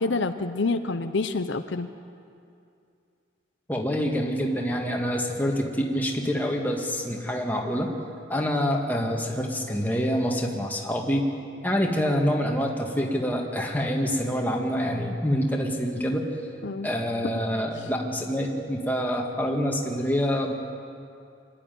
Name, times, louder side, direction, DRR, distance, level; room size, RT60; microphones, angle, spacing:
voice 1, 0.0-1.9 16.6-16.9 17.2-17.3, left 3 dB, 65° left, 9 dB, 0.7 m, -27 dB
voice 2, 3.7-7.9 8.3-11.3 11.6-16.3 16.8-20.5, equal, 10° left, 0 dB, 1.9 m, -26 dB
24.5 x 12.5 x 9.3 m, 2.5 s
head